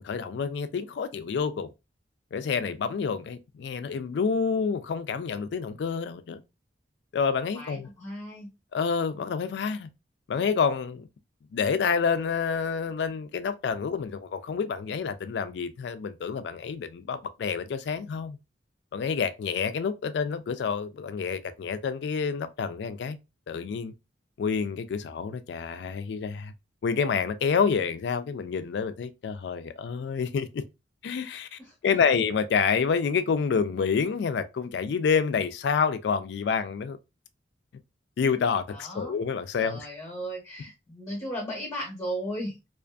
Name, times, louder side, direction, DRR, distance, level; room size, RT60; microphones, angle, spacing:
voice 1, 0.0-1.7 2.3-6.4 7.1-7.9 8.7-9.9 10.3-11.1 11.5-18.4 18.9-23.2 23.5-23.9 24.4-26.5 26.8-30.6 31.0-37.0 38.2-39.9, left 6 dB, 65° left, 0.3 m, -28 dB
voice 2, 7.5-8.5 31.6-32.1 38.7-39.2 39.6-42.6, equal, 20° left, 0.8 m, -36 dB
2.5 x 2.4 x 2.2 m
head